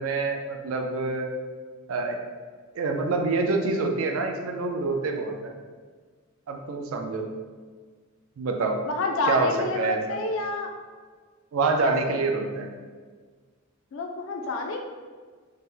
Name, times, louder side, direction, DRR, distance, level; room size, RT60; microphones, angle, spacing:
voice 1, 0.0-1.3 1.9-2.2 2.7-5.5 6.5-7.3 8.4-8.8 9.3-10.2 11.5-12.7, right 3 dB, 80° right, 3 dB, 0.4 m, -26 dB
voice 2, 8.9-10.7 11.8-12.2 13.9-14.8, left 2 dB, 65° left, 3 dB, 0.3 m, -29 dB
2.8 x 2.0 x 3.7 m, 1.6 s
head